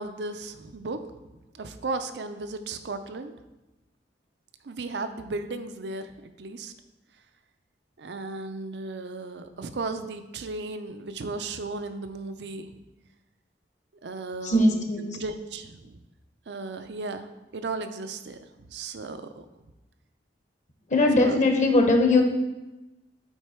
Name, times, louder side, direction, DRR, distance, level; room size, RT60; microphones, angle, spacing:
voice 1, 0.0-3.3 4.6-6.7 8.0-12.8 14.0-14.8 15.1-16.0 16.5-19.5 21.2-21.4, right 3 dB, 70° right, 9 dB, 0.5 m, -35 dB
voice 2, 14.4-15.2 20.9-22.2, left 2 dB, 45° left, 3 dB, 1.1 m, -20 dB
8.0 x 4.4 x 4.4 m, 1.0 s
head